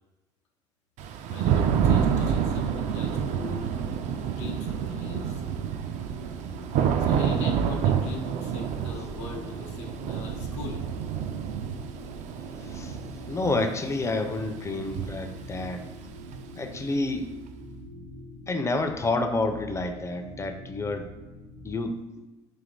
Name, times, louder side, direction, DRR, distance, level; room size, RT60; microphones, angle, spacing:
Thunder / Rain, 1.0-16.8, right 8 dB, 55° right, 0.4 m, -28 dB
voice 1, 1.2-3.7 4.2-5.4 7.0-10.8, left 4 dB, 85° left, 1 dB, 0.6 m, -40 dB
sound 1, 2.7-21.7, right 1 dB, 75° right, 1.4 m, -44 dB
voice 2, 13.3-15.8 16.6-17.3 18.5-21.1 21.6-22.0, left 2 dB, 20° left, 6 dB, 0.5 m, -29 dB
3.3 x 2.8 x 3.9 m, 1.1 s
hypercardioid pair, 70°, 15 cm